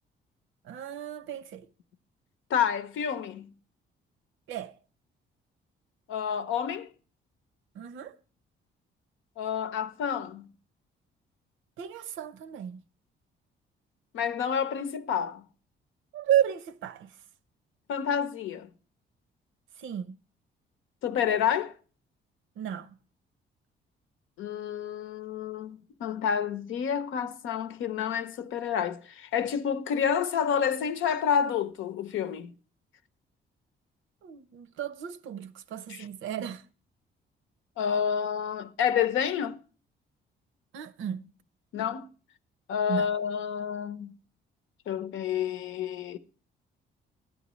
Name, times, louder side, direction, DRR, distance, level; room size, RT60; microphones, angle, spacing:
voice 1, 0.6-1.7 4.5-4.7 7.7-8.2 11.8-12.8 16.1-17.2 19.8-20.2 22.6-23.0 34.2-36.6 40.7-41.3 42.9-43.1, right 10 dB, 85° right, 0.7 m, -33 dB
voice 2, 2.5-3.5 6.1-6.9 9.4-10.5 14.1-15.4 17.9-18.7 21.0-21.7 24.4-32.5 35.9-36.0 37.8-39.6 41.7-42.1 42.7-44.1 44.9-46.2, left 8 dB, 80° left, 0.8 m, -29 dB
13.0 x 9.7 x 3.1 m
cardioid pair, 90°, 20 cm